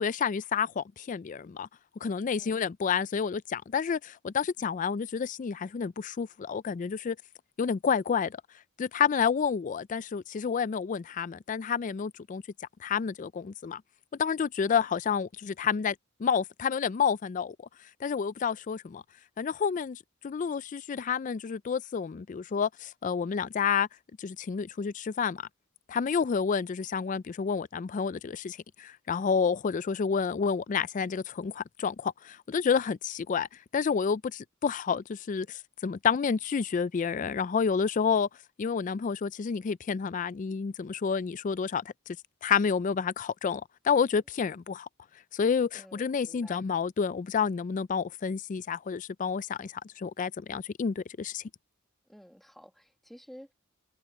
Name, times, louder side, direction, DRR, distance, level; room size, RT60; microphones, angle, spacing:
voice 1, 0.0-1.7 2.0-7.2 7.6-8.4 8.8-12.4 12.8-13.8 14.2-17.6 18.0-19.0 19.4-20.0 20.2-23.9 24.2-25.5 25.9-33.5 33.7-38.3 38.6-41.8 42.4-44.9 45.3-51.4, left 6 dB, 40° left, 0.3 m, -29 dB
voice 2, 45.7-46.6 52.1-53.5, equal, ahead, 1.6 m, -52 dB
head